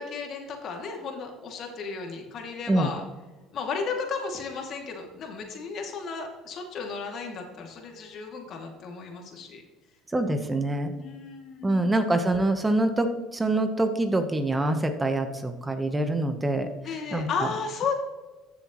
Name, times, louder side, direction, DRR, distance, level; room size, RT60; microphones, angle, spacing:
voice 1, 0.0-3.0 3.5-9.6 11.0-12.0 16.8-17.9, left 5 dB, 55° left, 2 dB, 2.4 m, -34 dB
voice 2, 10.1-10.9 11.6-16.7 17.1-17.3, right 2 dB, 15° right, 7 dB, 1.0 m, -25 dB
14.5 x 7.0 x 3.1 m, 1.2 s
supercardioid pair, 90°, 0 cm